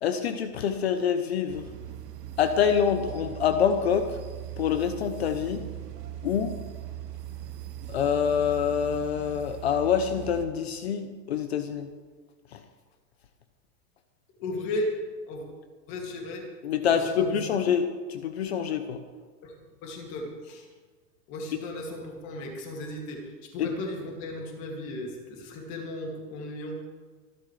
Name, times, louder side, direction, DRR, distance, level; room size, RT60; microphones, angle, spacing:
voice 1, 0.0-1.6 2.4-4.2 4.6-5.6 6.2-6.6 7.9-11.9 12.5-12.6 16.6-19.0 23.6-23.7, left 7 dB, 40° left, 8 dB, 0.8 m, -26 dB
sound 1, 1.5-10.4, right 12 dB, 75° right, 1.8 m, -40 dB
voice 2, 14.3-15.5 15.9-16.5 16.8-17.4 19.4-19.6 19.8-20.7 21.3-26.8, left 1 dB, 25° left, 1 dB, 2.4 m, -35 dB
26.5 x 11.5 x 3.3 m, 1.5 s
supercardioid pair, 175°, 49 cm